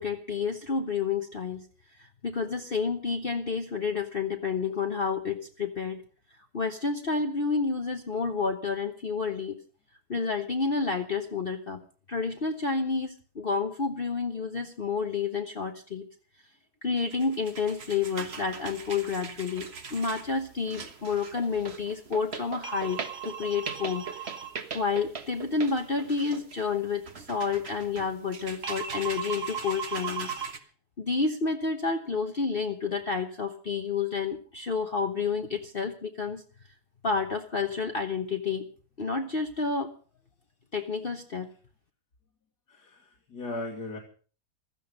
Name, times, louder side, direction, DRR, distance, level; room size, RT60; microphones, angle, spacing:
voice 1, 0.0-1.7 2.0-6.0 6.5-9.6 10.1-11.8 12.1-16.0 16.8-24.4 24.7-30.3 31.0-36.4 37.0-38.7 39.0-39.9 40.7-41.5, left 5 dB, 40° left, 4 dB, 1.2 m, -30 dB
sound 1, 17.0-30.6, right 6 dB, 40° right, 1.5 m, -38 dB
voice 2, 42.7-44.0, left 2 dB, 75° left, 1 dB, 2.8 m, -37 dB
16.0 x 14.0 x 5.3 m, 0.40 s
omnidirectional pair, 1.8 m